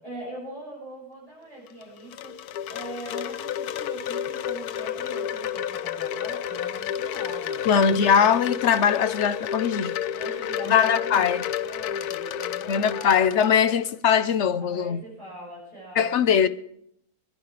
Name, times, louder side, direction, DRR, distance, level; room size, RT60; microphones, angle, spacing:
voice 1, 0.0-7.7 10.0-11.2 11.6-13.4 14.6-16.2, right 1 dB, 25° left, 7.3 m, -42 dB
Wind chime, 1.7-13.9, left 9 dB, 85° left, 1.2 m, -31 dB
voice 2, 7.7-9.9 10.7-11.4 12.7-15.0 16.0-16.5, left 7 dB, 55° left, 0.9 m, -21 dB
21.0 x 11.0 x 4.9 m
omnidirectional pair, 1.6 m